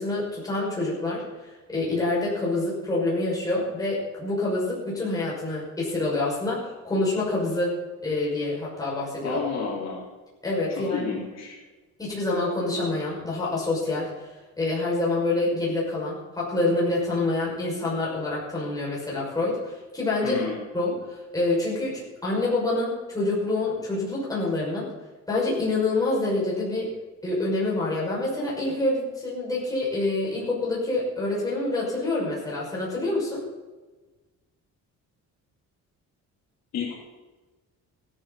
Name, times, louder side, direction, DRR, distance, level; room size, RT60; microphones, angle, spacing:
voice 1, 0.0-7.8 8.0-9.4 10.4-11.1 12.0-20.4 20.7-24.9 25.3-26.9 27.2-33.4, left 2 dB, 10° left, -6 dB, 6.3 m, -27 dB
voice 2, 9.2-10.0 10.8-11.6 20.2-20.6 36.7-36.9, left 5 dB, 55° left, -3 dB, 3.8 m, -30 dB
16.0 x 14.0 x 4.3 m, 1.2 s
cardioid pair, 170°, 31 cm